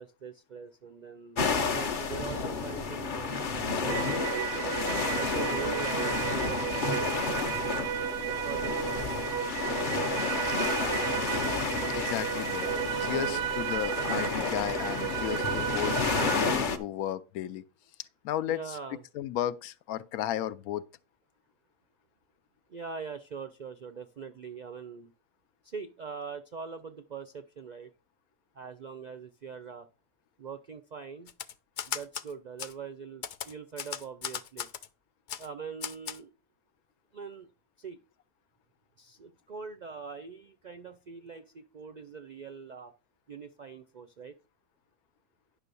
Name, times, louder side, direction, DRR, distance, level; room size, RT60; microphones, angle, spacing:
voice 1, 0.0-3.3 3.7-9.1 10.7-10.8 13.1-13.5 18.5-19.0 22.7-25.1 25.6-27.9 28.6-29.9 30.4-31.3 31.9-34.7 35.4-36.3 37.1-37.5 37.8-38.0 39.0-42.9 43.3-44.4, right 5 dB, 70° right, 0.4 m, -42 dB
sound 1, 1.4-16.8, left 5 dB, 45° left, 0.8 m, -31 dB
sound 2, 3.9-16.5, right 10 dB, 90° right, 1.1 m, -33 dB
voice 2, 11.9-12.7 13.0-17.6 18.2-18.8 19.1-20.8, left 11 dB, 90° left, 1.1 m, -34 dB
Typewriter, 31.3-32.3 32.6-32.7 33.2-34.9 35.3-35.5 35.8-36.2, left 8 dB, 70° left, 0.4 m, -37 dB
10.0 x 3.4 x 6.8 m
omnidirectional pair, 1.5 m